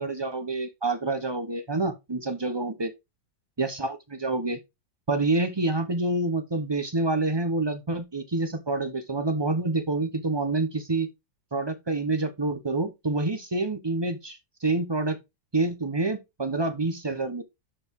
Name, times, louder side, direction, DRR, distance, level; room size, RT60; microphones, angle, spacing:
voice 1, 0.0-2.9 3.6-4.6 5.1-11.1 11.5-15.2 15.5-17.4, right 2 dB, 35° right, 0.4 m, -27 dB
11.5 x 4.6 x 3.6 m
omnidirectional pair, 2.1 m